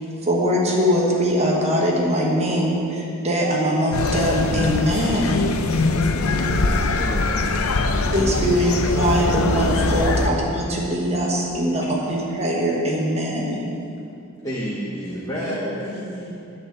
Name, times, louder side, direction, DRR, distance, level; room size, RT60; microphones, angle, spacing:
voice 1, 0.2-5.4 8.1-13.6, equal, 30° right, -2 dB, 1.2 m, -22 dB
sound 1, 3.9-10.3, left 3 dB, 75° left, 0.6 m, -22 dB
voice 2, 6.2-7.0 15.0-16.6, equal, 50° left, -5 dB, 2.1 m, -34 dB
voice 3, 7.0-8.4 11.7-11.8 12.2-12.3 13.9-16.0, equal, 15° left, -6 dB, 1.0 m, -33 dB
11.0 x 4.2 x 7.8 m, 2.6 s
head